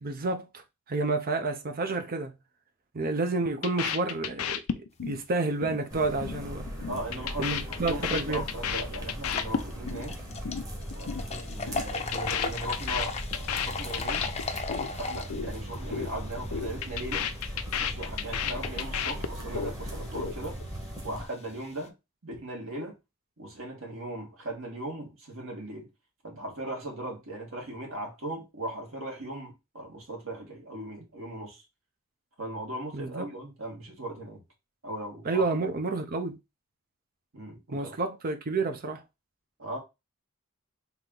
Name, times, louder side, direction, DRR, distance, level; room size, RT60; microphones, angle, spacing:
voice 1, 0.0-2.3 2.9-6.7 7.4-8.4 32.9-33.3 35.2-36.4 37.7-39.0, right 3 dB, 45° right, 0.6 m, -30 dB
sound 1, 3.6-5.2 5.5-5.8 6.1-6.4 6.7-10.0 10.3-10.6 10.9-11.2 11.5-14.9 15.2-15.5 15.8-16.1 16.4-19.7 20.0-20.6, left 7 dB, 85° left, 0.6 m, -32 dB
sound 2, 5.9-21.2, equal, 15° right, 1.1 m, -38 dB
voice 2, 6.9-10.2 10.9-14.3 15.0-17.3 17.8-20.6 21.0-21.9 22.2-23.0 23.4-25.9 26.2-31.6 32.4-34.4 34.8-35.5 37.3-38.0 39.6-39.8, right 1 dB, 65° right, 2.1 m, -38 dB
sound 3, 7.9-8.0 8.4-8.5 9.1-21.9, left 4 dB, 30° left, 0.6 m, -39 dB
4.0 x 2.9 x 3.7 m
head